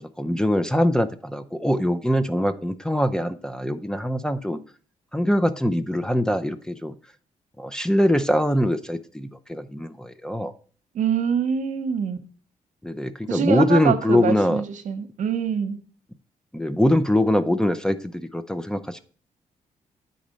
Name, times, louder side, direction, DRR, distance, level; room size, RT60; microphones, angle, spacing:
voice 1, 0.0-4.6 5.1-6.9 7.6-10.5 12.8-14.6 16.5-19.0, left 1 dB, 5° left, 11 dB, 0.5 m, -23 dB
voice 2, 10.9-12.2 13.3-15.8, right 7 dB, 75° right, 9 dB, 0.9 m, -25 dB
8.6 x 4.2 x 5.1 m, 0.43 s
cardioid pair, 85°, 13 cm